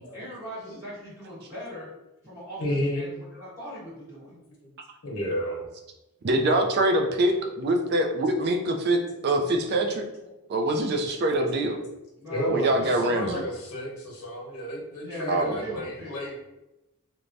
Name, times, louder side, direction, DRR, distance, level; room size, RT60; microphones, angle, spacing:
voice 1, 0.1-1.9 2.2-4.3 12.2-13.2 15.0-16.1, equal, 15° right, -11 dB, 1.2 m, -39 dB
voice 2, 2.6-3.1 4.2-4.7 5.0-5.6 7.3-7.4 7.7-7.8 8.1-9.1 9.3-9.4 9.7-9.8 10.2-10.3 11.7-11.8 12.2-16.3, equal, 75° left, -2 dB, 0.8 m, -33 dB
voice 3, 6.2-9.0 9.2-10.0 10.5-11.8 12.5-13.4 15.3-15.5, right 1 dB, 45° right, 3 dB, 0.4 m, -24 dB
3.2 x 2.2 x 2.5 m, 0.94 s
head